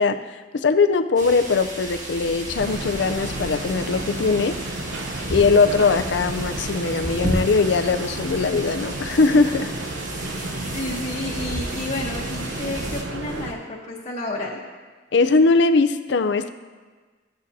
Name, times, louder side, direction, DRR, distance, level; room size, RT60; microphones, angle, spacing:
voice 1, 0.0-4.6 5.3-9.7 15.1-16.5, left 4 dB, 75° left, 10 dB, 0.5 m, -20 dB
sound 1, 1.2-13.0, right 1 dB, 45° right, 1.6 m, -33 dB
sound 2, 2.6-13.5, right 2 dB, 80° right, 0.7 m, -32 dB
voice 2, 10.5-14.6, left 2 dB, 35° left, -5 dB, 1.0 m, -31 dB
14.5 x 9.0 x 2.7 m, 1.4 s
head